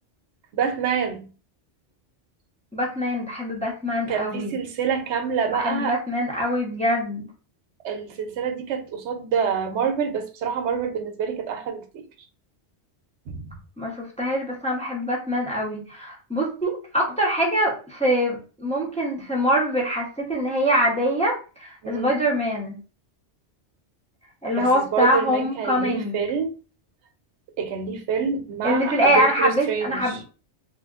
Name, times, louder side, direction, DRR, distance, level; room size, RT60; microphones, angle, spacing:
voice 1, 0.5-1.3 4.1-6.0 7.8-12.0 13.3-13.5 21.8-22.1 24.5-26.5 27.6-30.2, right 6 dB, 75° right, 0.9 m, -27 dB
voice 2, 2.7-4.5 5.5-7.3 13.8-22.8 24.4-26.2 28.6-30.2, equal, 5° left, 0.6 m, -24 dB
3.3 x 2.5 x 2.4 m
omnidirectional pair, 1.2 m